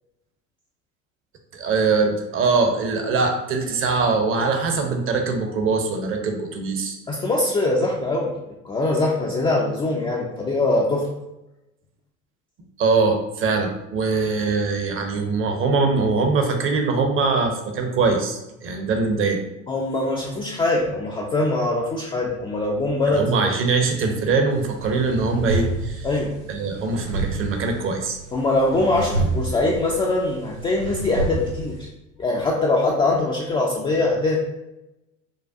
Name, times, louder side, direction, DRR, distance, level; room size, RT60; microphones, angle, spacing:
voice 1, 1.5-7.0 12.8-19.4 23.1-26.1 26.5-28.2, right 4 dB, 35° right, 4 dB, 0.7 m, -22 dB
voice 2, 7.1-8.3 8.6-11.1 19.7-23.4 26.0-26.3 28.3-31.8 32.2-34.4, left 2 dB, 15° left, -3 dB, 0.3 m, -22 dB
sound 1, 24.5-31.9, right 3 dB, 85° right, 1.2 m, -29 dB
4.7 x 2.2 x 2.5 m, 0.94 s
figure-of-eight pair, 70°, 39 cm